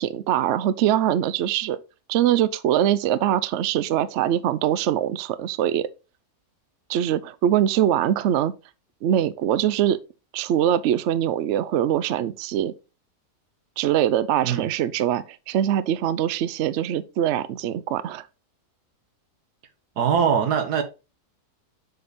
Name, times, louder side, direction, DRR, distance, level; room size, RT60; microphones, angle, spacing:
voice 1, 0.0-1.8 2.1-5.9 6.9-8.5 9.0-10.0 10.3-12.7 13.8-18.3, right 11 dB, 70° right, 0.7 m, -23 dB
voice 2, 20.0-20.8, right 7 dB, 85° right, 1.6 m, -22 dB
7.7 x 3.6 x 4.0 m
omnidirectional pair, 1.7 m